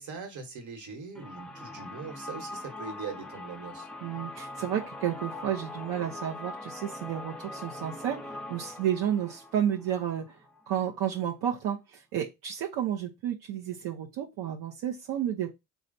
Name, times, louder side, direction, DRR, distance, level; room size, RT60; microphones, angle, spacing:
voice 1, 0.0-3.9, right 5 dB, 50° right, 1.4 m, -41 dB
sound 1, 1.1-10.9, left 2 dB, ahead, 0.5 m, -42 dB
voice 2, 4.0-10.4 10.7-15.5, right 10 dB, 75° right, 0.8 m, -31 dB
3.3 x 2.4 x 3.9 m
supercardioid pair, 65°, 39 cm